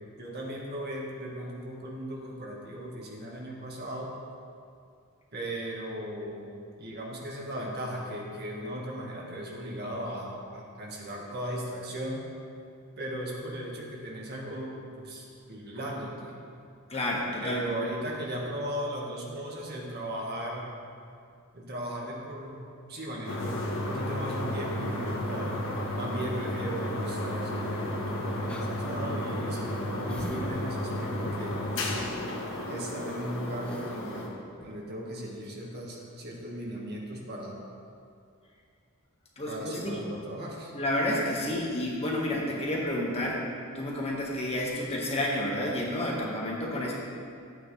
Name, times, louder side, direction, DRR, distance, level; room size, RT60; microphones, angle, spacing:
voice 1, 0.0-4.1 5.3-6.5 6.8-12.3 13.0-16.3 17.4-20.7 21.5-25.6 26.0-31.6 32.7-34.3 34.6-37.6 39.4-40.7, right 1 dB, 50° right, -2 dB, 1.7 m, -37 dB
voice 2, 16.9-17.6 39.4-40.0 40.7-43.4 43.7-47.0, left 1 dB, 30° left, -3 dB, 1.7 m, -30 dB
sound 1, 23.3-34.3, left 1 dB, 65° left, 1.5 m, -33 dB
sound 2, 28.5-28.7 29.1-29.2 30.1-30.4 30.7-30.8 31.8-32.2 32.8-33.0 33.3-33.4 33.6-33.9 34.6-34.7, equal, 5° left, 0.7 m, -44 dB
13.5 x 8.8 x 3.4 m, 2.4 s
head